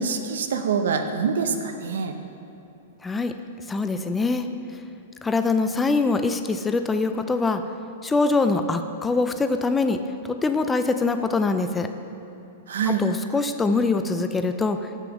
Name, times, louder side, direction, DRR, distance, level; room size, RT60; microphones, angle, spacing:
voice 1, 0.0-2.1 12.7-13.0, right 5 dB, 80° right, 6 dB, 0.7 m, -25 dB
voice 2, 3.0-3.3 3.7-4.5 5.2-7.6 8.0-11.9 12.9-14.9, left 3 dB, 10° left, 8 dB, 0.4 m, -23 dB
7.0 x 6.8 x 6.1 m, 2.9 s
hypercardioid pair, 140°, 0 cm